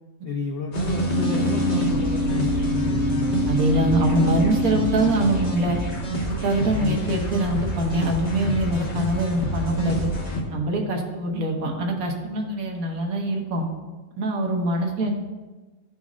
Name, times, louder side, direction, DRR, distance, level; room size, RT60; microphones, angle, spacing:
voice 1, 0.2-3.4 6.7-7.0, left 4 dB, 85° left, 1 dB, 0.5 m, -31 dB
sound 1, 0.7-10.4, equal, 30° left, 0.9 m, -27 dB
sound 2, 1.1-6.1, left 1 dB, 20° right, 1.0 m, -26 dB
voice 2, 3.4-5.8 6.3-10.1 10.5-13.7 14.2-15.1, right 1 dB, 65° right, 1 dB, 1.3 m, -24 dB
11.5 x 4.1 x 2.4 m, 1.2 s
omnidirectional pair, 1.7 m